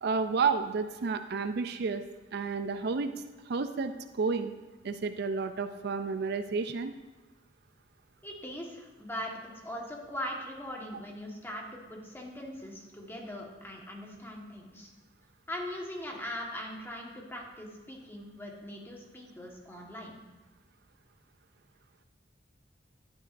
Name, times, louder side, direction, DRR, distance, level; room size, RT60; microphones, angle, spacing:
voice 1, 0.0-2.0 2.3-3.1 3.5-4.5 4.8-6.9, right 4 dB, 60° right, 9 dB, 0.4 m, -31 dB
voice 2, 8.2-14.9 15.5-20.2, left 1 dB, 10° left, -1 dB, 1.4 m, -41 dB
11.5 x 9.4 x 2.6 m, 1.2 s
head